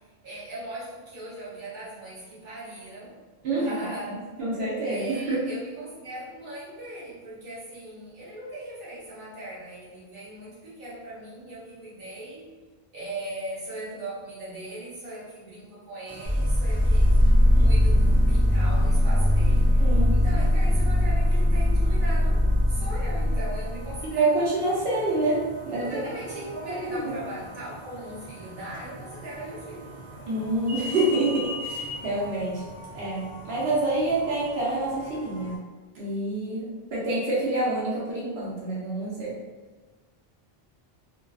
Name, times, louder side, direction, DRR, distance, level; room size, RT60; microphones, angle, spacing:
voice 1, 0.0-3.2 3.5-4.2 4.8-12.4 12.9-17.1 17.6-24.6 25.8-29.9, right 1 dB, 55° right, -8 dB, 1.0 m, -39 dB
voice 2, 4.4-5.4 17.6-17.7 19.8-20.2 24.2-26.5 26.8-27.0 30.3-32.6 32.9-35.6 35.9-39.3, right 2 dB, 85° right, -6 dB, 0.9 m, -27 dB
sound 1, 16.1-35.6, equal, 10° right, 0.9 m, -42 dB
sound 2, 16.3-24.1, left 1 dB, 25° right, 0.4 m, -20 dB
2.3 x 2.3 x 2.3 m, 1.3 s
omnidirectional pair, 1.0 m